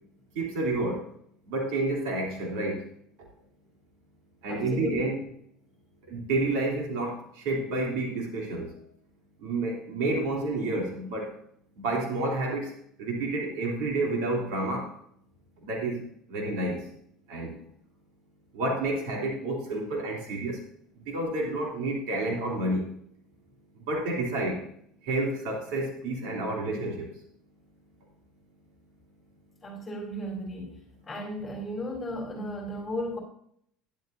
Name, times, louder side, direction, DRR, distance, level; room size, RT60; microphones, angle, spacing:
voice 1, 0.3-1.1 1.5-2.9 4.4-5.2 6.0-8.7 9.4-11.3 11.8-12.7 13.0-14.9 15.6-16.0 16.3-16.9 17.3-17.5 18.5-20.6 20.9-22.9 23.8-24.6 25.0-27.1, right 2 dB, 75° right, -1 dB, 2.9 m, -29 dB
voice 2, 4.5-5.1 29.6-30.8 31.1-33.2, equal, 15° left, -1 dB, 4.0 m, -35 dB
12.0 x 10.5 x 2.7 m, 0.67 s
supercardioid pair, 125°, 0 cm